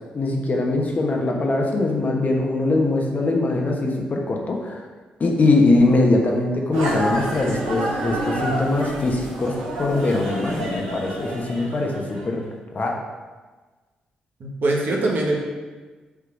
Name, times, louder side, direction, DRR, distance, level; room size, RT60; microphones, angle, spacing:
voice 1, 0.1-4.8 5.2-12.4 12.7-12.9, left 2 dB, 45° left, 0 dB, 1.3 m, -22 dB
sound 1, 6.7-12.3, right 1 dB, 80° right, 1.3 m, -28 dB
voice 2, 14.4-15.4, right 2 dB, 60° right, -1 dB, 1.4 m, -22 dB
7.0 x 3.7 x 4.8 m, 1.3 s
hypercardioid pair, 40°, 4 cm